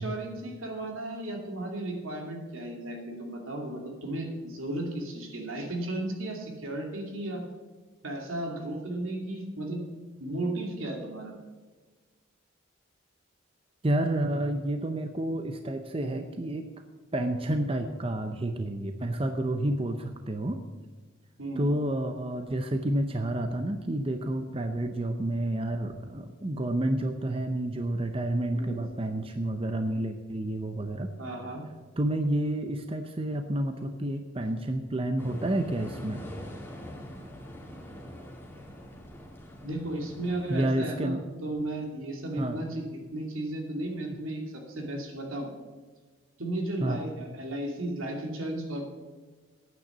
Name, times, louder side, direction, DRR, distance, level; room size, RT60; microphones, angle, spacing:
voice 1, 0.0-7.4 8.0-9.8 10.2-11.3 21.4-21.7 28.5-28.8 31.2-31.7 39.6-45.5 46.4-48.9, right 1 dB, 80° right, 1 dB, 2.5 m, -34 dB
voice 2, 13.8-16.7 17.1-20.6 21.6-31.1 32.0-36.3 40.5-41.2 42.4-42.6 46.8-47.1, right 1 dB, 25° right, 7 dB, 0.6 m, -30 dB
sound 1, 35.2-40.6, equal, 10° left, 1.9 m, -44 dB
9.2 x 8.9 x 7.3 m, 1.3 s
head